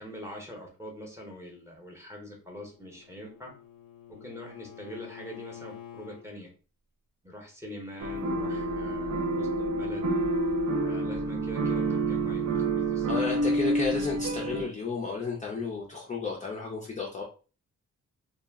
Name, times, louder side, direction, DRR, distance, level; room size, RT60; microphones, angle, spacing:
voice 1, 0.0-3.5 4.1-6.5 7.2-10.1 10.8-13.2, equal, 10° right, 0 dB, 0.8 m, -44 dB
Bowed string instrument, 2.5-6.3, left 10 dB, 90° left, 0.5 m, -48 dB
sound 1, 8.0-14.6, right 2 dB, 65° right, 0.6 m, -28 dB
voice 2, 13.1-17.2, left 4 dB, 25° left, -2 dB, 0.4 m, -33 dB
2.3 x 2.1 x 3.3 m, 0.36 s
wide cardioid pair, 140°, 32 cm